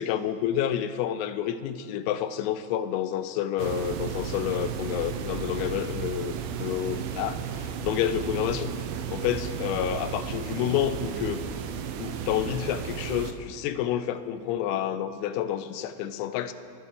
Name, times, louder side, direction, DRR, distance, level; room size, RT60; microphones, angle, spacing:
voice 1, 0.0-8.8 9.1-11.4 12.0-16.5, left 10 dB, 85° left, 11 dB, 3.4 m, -29 dB
sound 1, 3.6-13.3, right 7 dB, 85° right, 3.6 m, -34 dB
22.5 x 12.0 x 4.5 m, 2.6 s
omnidirectional pair, 6.0 m